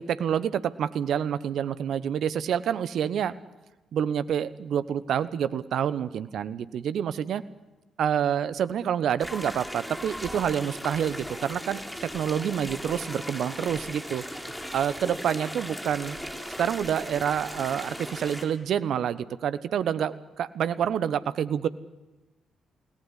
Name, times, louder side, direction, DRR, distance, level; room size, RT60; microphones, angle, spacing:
voice 1, 0.0-3.3 3.9-7.4 8.0-14.2 14.7-16.2 16.6-21.7, right 9 dB, 65° right, 15 dB, 1.1 m, -28 dB
sound 1, 9.2-18.5, equal, 5° left, 5.2 m, -37 dB
30.0 x 18.0 x 10.0 m, 1.1 s
hypercardioid pair, 45°, 0 cm